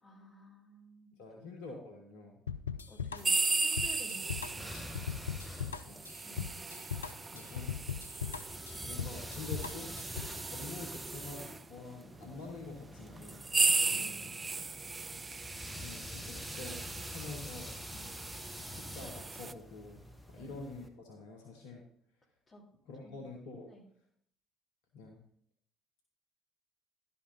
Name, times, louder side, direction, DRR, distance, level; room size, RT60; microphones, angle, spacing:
voice 1, 0.0-1.1 2.9-5.0 6.2-6.6 13.8-14.5 17.9-18.1 20.3-20.5 22.5-22.6 23.0-23.2 23.7-23.8, equal, 30° left, -2 dB, 3.3 m, -54 dB
voice 2, 1.2-2.4 5.6-6.0 7.3-7.8 8.8-10.0 10.5-13.4 13.9-14.4 15.7-17.8 18.7-20.0 20.3-21.9 22.9-23.7 24.9-25.2, left 3 dB, 70° left, 1 dB, 1.3 m, -47 dB
sound 1, 2.5-10.4, left 7 dB, 85° left, 0.3 m, -39 dB
sound 2, 3.2-11.6 12.4-12.5 13.2-19.5, right 3 dB, 30° right, 0.4 m, -36 dB
sound 3, 4.1-20.9, left 1 dB, 10° left, 1.4 m, -48 dB
11.5 x 5.9 x 4.2 m, 0.65 s
figure-of-eight pair, 50°, 0 cm